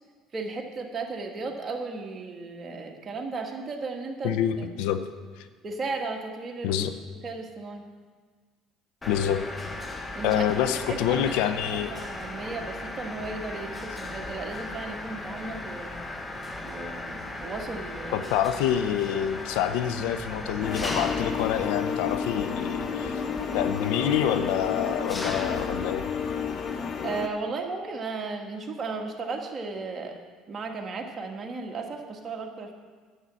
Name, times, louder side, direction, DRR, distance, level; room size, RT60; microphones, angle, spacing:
voice 1, 0.3-4.7 5.6-6.8 7.2-7.9 10.2-10.4 10.9-15.9 16.6-18.3 27.0-30.2 30.5-32.7, right 3 dB, 35° right, 2 dB, 1.7 m, -35 dB
voice 2, 4.2-5.0 6.6-6.9 9.0-9.4 10.2-11.9 18.1-23.2 23.5-26.1, left 10 dB, 80° left, 10 dB, 0.7 m, -27 dB
Mechanisms, 9.0-27.1, left 2 dB, 20° left, 1.2 m, -37 dB
sound 1, 20.6-27.3, left 7 dB, 45° left, 0.9 m, -31 dB
10.0 x 8.1 x 6.2 m, 1.5 s
supercardioid pair, 80°, 0 cm